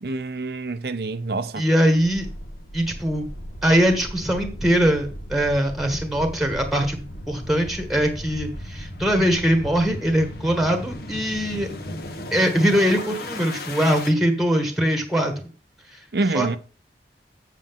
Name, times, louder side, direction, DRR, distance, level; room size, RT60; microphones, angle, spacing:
voice 1, 0.0-1.6 16.1-16.6, right 2 dB, 65° right, 0.7 m, -26 dB
voice 2, 1.6-2.3 2.7-3.3 3.6-11.7 12.3-15.3 15.9-16.0 16.3-16.6, equal, ahead, 1.5 m, -22 dB
sound 1, 2.0-14.1, left 1 dB, 60° left, 1.3 m, -36 dB
8.1 x 7.5 x 3.7 m
head